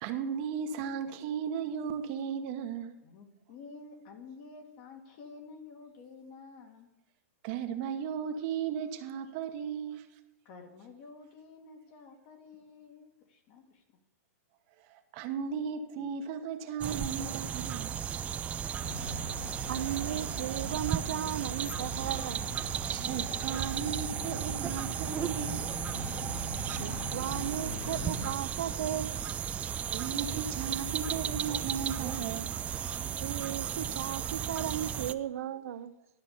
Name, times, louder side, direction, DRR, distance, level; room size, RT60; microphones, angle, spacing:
voice 1, 0.0-2.9 7.4-10.1 15.1-18.0 19.2-19.3 22.8-25.7 29.9-32.5, right 7 dB, 45° right, 1.1 m, -36 dB
voice 2, 3.0-6.9 10.5-13.8, left 4 dB, 45° left, 2.0 m, -50 dB
sound 1, 16.8-35.1, right 9 dB, 15° right, 0.3 m, -35 dB
sound 2, 18.8-28.3, left 3 dB, 70° left, 3.0 m, -42 dB
voice 3, 19.7-22.5 26.7-29.2 33.2-35.9, right 11 dB, 70° right, 0.7 m, -36 dB
12.0 x 5.3 x 6.8 m
hypercardioid pair, 140°, 8 cm